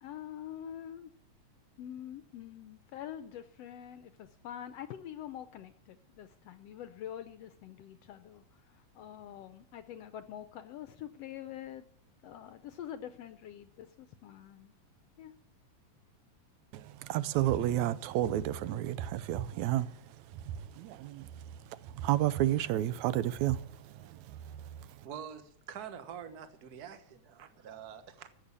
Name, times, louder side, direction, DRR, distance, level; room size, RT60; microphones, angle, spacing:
voice 1, 0.0-1.1 1.8-11.8 12.2-14.7 15.2-15.3, left 10 dB, 75° left, 1.6 m, -45 dB
voice 2, 16.7-19.9 20.8-21.3 22.0-23.6 24.3-24.4, right 13 dB, 75° right, 2.0 m, -30 dB
voice 3, 25.0-28.3, right 8 dB, 55° right, 1.1 m, -46 dB
14.5 x 7.9 x 8.3 m
omnidirectional pair, 3.4 m